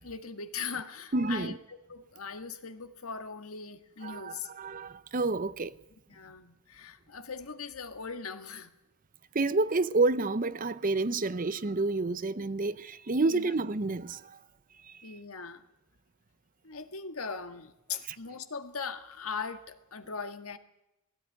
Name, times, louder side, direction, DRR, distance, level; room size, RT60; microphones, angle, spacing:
voice 1, 0.0-4.5 6.1-8.7 13.2-13.5 15.0-15.6 16.6-20.6, left 5 dB, 80° left, 1.7 m, -40 dB
voice 2, 1.1-1.5 4.0-5.7 9.3-14.4 14.9-15.1, right 3 dB, 40° right, 0.7 m, -29 dB
19.0 x 17.0 x 9.6 m
head